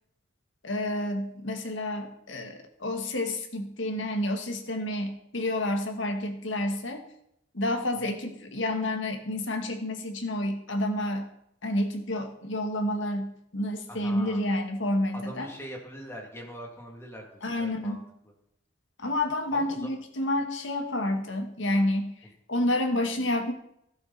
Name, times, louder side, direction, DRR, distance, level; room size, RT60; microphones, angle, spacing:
voice 1, 0.6-7.0 7.5-11.3 11.6-15.5 17.4-18.0 19.0-22.1 22.5-23.5, left 1 dB, 75° left, 4 dB, 2.1 m, -29 dB
voice 2, 13.9-14.4 15.1-18.0 19.5-19.9, equal, 15° left, -1 dB, 3.0 m, -42 dB
16.5 x 11.0 x 4.4 m, 0.76 s
head